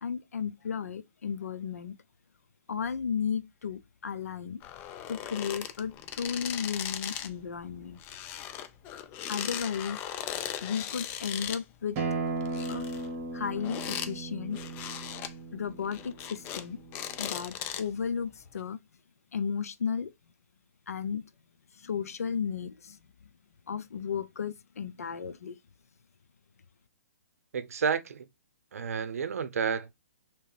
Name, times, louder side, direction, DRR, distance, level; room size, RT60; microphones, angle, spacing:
voice 1, 0.0-1.9 2.7-4.6 5.1-8.0 9.3-10.0 10.6-12.0 12.7-12.9 13.3-14.6 15.5-16.8 17.2-18.8 19.3-20.1 20.9-21.2 21.8-23.0 23.7-25.6, left 7 dB, 80° left, 0.5 m, -34 dB
sound 1, 4.6-7.4 7.6-11.6 12.3-14.1 14.5-15.3 15.8-16.7 16.9-18.0 18.6-18.7, left 10 dB, 25° left, 0.4 m, -38 dB
Acoustic guitar, 12.0-17.2, right 3 dB, 30° right, 1.3 m, -36 dB
voice 2, 27.5-28.3 28.7-29.9, right 6 dB, 70° right, 0.6 m, -30 dB
3.3 x 2.9 x 3.2 m
hypercardioid pair, 140°, 8 cm